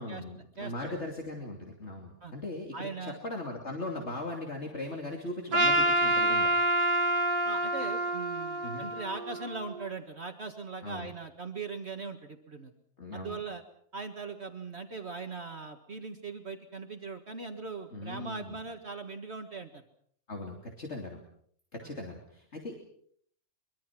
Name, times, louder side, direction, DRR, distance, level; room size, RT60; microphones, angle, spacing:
voice 1, 0.0-6.5 8.6-8.9 10.8-11.1 13.0-13.4 17.9-18.6 20.3-21.2 21.7-22.8, left 2 dB, 50° left, 1 dB, 3.2 m, -39 dB
voice 2, 0.6-1.0 2.2-2.3 2.7-3.2 7.4-12.7 13.1-13.6 13.9-19.8 21.8-22.0, right 4 dB, 45° right, 5 dB, 2.0 m, -40 dB
Trumpet, 5.5-9.8, right 1 dB, 75° right, 2.5 m, -27 dB
24.0 x 23.5 x 6.0 m, 0.63 s
omnidirectional pair, 1.5 m